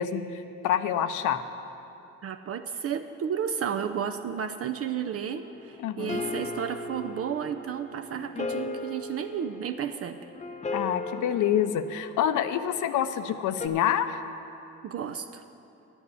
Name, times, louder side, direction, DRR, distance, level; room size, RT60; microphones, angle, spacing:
voice 1, 0.0-1.4 5.8-6.2 10.7-14.2, left 9 dB, 80° left, 11 dB, 0.7 m, -27 dB
voice 2, 2.2-10.2 14.8-15.4, right 8 dB, 50° right, 7 dB, 0.5 m, -32 dB
sound 1, 5.4-12.9 13.6-13.7, left 3 dB, 25° left, 0.7 m, -37 dB
11.0 x 7.1 x 8.2 m, 2.9 s
cardioid pair, 90°, 30 cm